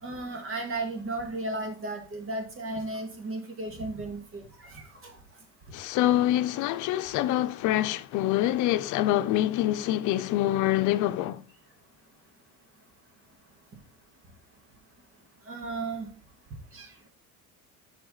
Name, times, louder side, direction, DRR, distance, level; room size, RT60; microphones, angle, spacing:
voice 1, 0.0-5.2 15.5-16.1 16.7-16.9, right 2 dB, 40° right, 2.1 m, -35 dB
voice 2, 5.7-11.4, left 13 dB, 65° left, 0.7 m, -25 dB
8.1 x 5.9 x 3.9 m
cardioid pair, 150°, 33 cm